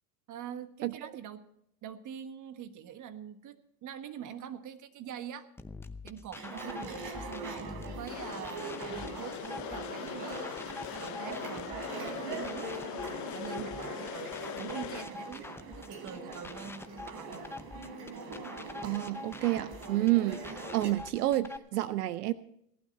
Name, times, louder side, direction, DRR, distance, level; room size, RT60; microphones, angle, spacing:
voice 1, 0.3-1.4 1.8-5.5 6.0-9.4 9.7-10.6 11.0-17.4, right 8 dB, 40° right, 9 dB, 1.5 m, -44 dB
sound 1, 5.6-21.6, left 3 dB, 5° left, 0.7 m, -46 dB
sound 2, 6.4-20.9, right 3 dB, 60° right, 3.6 m, -42 dB
sound 3, 8.1-15.0, left 14 dB, 40° left, 0.7 m, -42 dB
voice 2, 18.8-22.3, right 16 dB, 85° right, 15 dB, 0.7 m, -29 dB
17.5 x 12.0 x 4.2 m, 0.71 s
hypercardioid pair, 95°, 45 cm